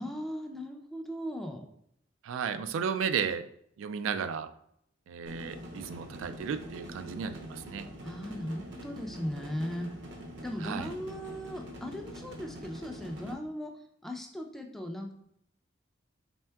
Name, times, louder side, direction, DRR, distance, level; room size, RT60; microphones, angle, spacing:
voice 1, 0.0-1.6 8.0-9.9 10.4-15.1, equal, ahead, 2 dB, 0.4 m, -38 dB
voice 2, 2.2-3.5 3.8-4.5 5.1-7.9 10.6-10.9, right 7 dB, 85° right, 10 dB, 0.3 m, -34 dB
sound 1, 5.3-13.3, equal, 65° right, 0.7 m, -45 dB
4.4 x 3.5 x 2.2 m, 0.72 s
head